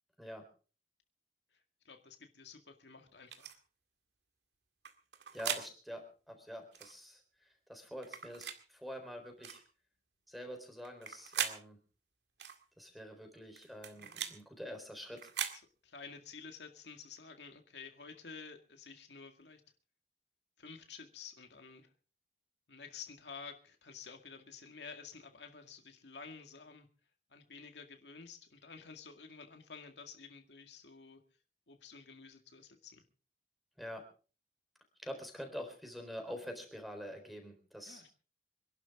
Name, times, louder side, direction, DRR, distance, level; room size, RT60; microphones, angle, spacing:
voice 1, 1.9-3.6 13.9-14.3 15.5-19.6 20.6-21.9 22.7-26.9 27.3-31.2 31.7-33.0 37.9-38.1, left 5 dB, 80° left, 5 dB, 2.0 m, -51 dB
sound 1, 3.3-3.5 4.8-5.7 6.7-6.9 8.0-8.6 9.4-9.6 10.8-11.6 12.4-12.6 13.6-14.4 15.2-15.6, right 8 dB, 75° right, 2.0 m, -39 dB
voice 2, 5.3-7.2 7.7-9.6 10.3-11.8 12.8-15.2 33.8-34.0 35.0-38.0, equal, ahead, 5 dB, 3.9 m, -46 dB
26.5 x 12.0 x 3.7 m, 0.38 s
head